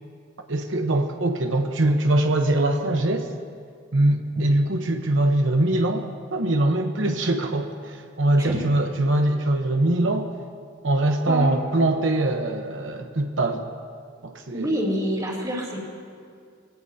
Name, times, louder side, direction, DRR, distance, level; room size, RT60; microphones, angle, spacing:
voice 1, 0.5-3.3 3.9-10.3 10.8-13.6 14.2-14.8, right 1 dB, 75° right, 4 dB, 1.0 m, -22 dB
voice 2, 14.5-15.8, equal, 20° right, -3 dB, 3.0 m, -27 dB
23.0 x 17.0 x 2.8 m, 2.2 s
head